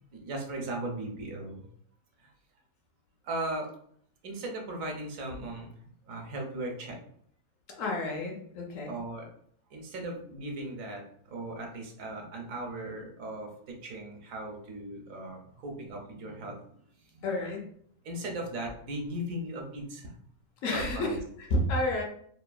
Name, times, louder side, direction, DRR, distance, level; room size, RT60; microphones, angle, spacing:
voice 1, 0.0-1.7 2.2-2.3 3.2-3.7 4.2-5.7 6.1-7.0 8.9-9.3 9.7-17.3 18.0-20.1 20.7-21.2, right 1 dB, 70° right, 1 dB, 1.0 m, -38 dB
voice 2, 7.8-8.9 17.2-17.7 20.6-22.0, left 1 dB, 70° left, 1 dB, 0.9 m, -30 dB
2.8 x 2.3 x 2.2 m, 0.64 s
omnidirectional pair, 1.5 m